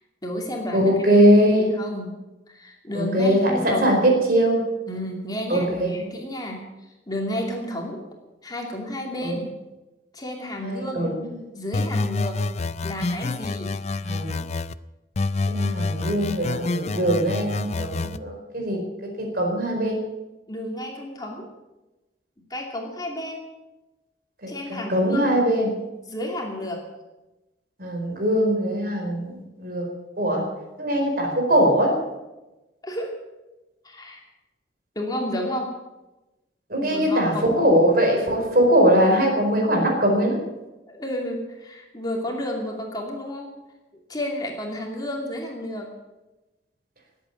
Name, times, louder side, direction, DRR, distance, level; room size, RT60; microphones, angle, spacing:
voice 1, 0.2-2.2 2.5-4.0 4.9-8.0 8.4-9.6 10.1-11.1 11.5-12.5 12.8-13.8 20.5-21.5 22.5-23.5 24.5-25.4 26.1-26.9 32.8-33.2 33.8-34.2 34.9-35.8 36.8-37.6 40.9-43.5 44.1-45.9, left 1 dB, 20° left, 0 dB, 2.6 m, -31 dB
voice 2, 0.7-1.7 2.9-4.6 5.5-5.9 9.2-9.3 10.6-11.3 14.0-14.3 15.5-18.8 19.2-20.0 24.4-25.7 27.8-29.8 30.2-30.4 30.8-31.9 36.7-40.4, equal, 55° right, 1 dB, 4.6 m, -21 dB
sound 1, 11.7-14.7 15.2-18.2, left 3 dB, 35° left, 0.4 m, -27 dB
19.5 x 8.5 x 8.6 m, 1.0 s
head